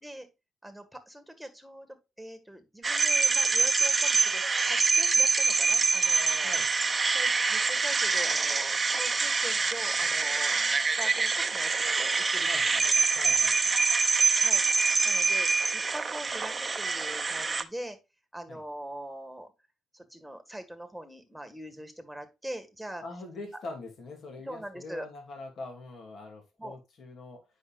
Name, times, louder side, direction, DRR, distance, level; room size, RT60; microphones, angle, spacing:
voice 1, 0.6-6.6 7.1-13.2 14.4-14.6 15.0-18.0 18.3-19.5 19.9-23.0 24.4-25.1 26.6-26.8, right 1 dB, ahead, 7 dB, 1.9 m, -42 dB
sound 1, 2.8-17.6, right 4 dB, 30° right, 0.8 m, -25 dB
voice 2, 12.5-13.8 18.5-18.6 23.0-27.4, left 2 dB, 60° left, 2 dB, 2.8 m, -43 dB
9.7 x 5.6 x 2.5 m, 0.25 s
cardioid pair, 90°, 0 cm